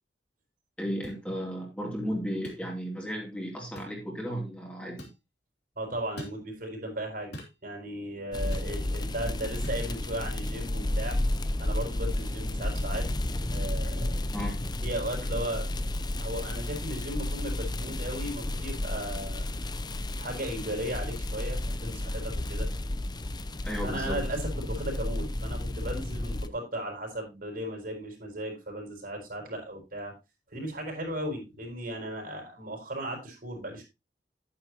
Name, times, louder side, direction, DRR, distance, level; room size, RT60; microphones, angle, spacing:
voice 1, 0.8-5.1 14.3-14.6 23.6-24.2, equal, 5° left, -1 dB, 2.8 m, -34 dB
sound 1, 1.0-1.2 2.4-2.6 3.8-4.0 5.0-5.2 6.2-6.4 7.3-7.6 8.5-8.7 9.6-9.8, equal, 65° left, 3.1 m, -43 dB
voice 2, 5.8-11.2 11.6-13.1 13.5-14.2 14.8-15.8 16.2-19.5 20.2-22.7 23.8-30.1 30.5-33.8, right 1 dB, 55° right, 2 dB, 4.8 m, -36 dB
sound 2, 8.3-26.5, left 1 dB, 25° left, 0.6 m, -32 dB
10.0 x 9.5 x 2.9 m, 0.25 s
head